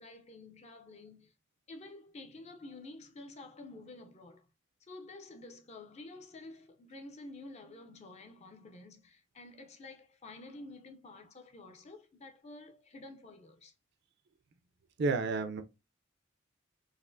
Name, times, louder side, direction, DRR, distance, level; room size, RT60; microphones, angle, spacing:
voice 1, 0.0-1.3 1.7-4.5 4.8-13.7, left 2 dB, 35° left, 0.5 m, -50 dB
voice 2, 15.0-15.6, right 3 dB, 55° right, 0.4 m, -30 dB
4.1 x 2.5 x 2.5 m
head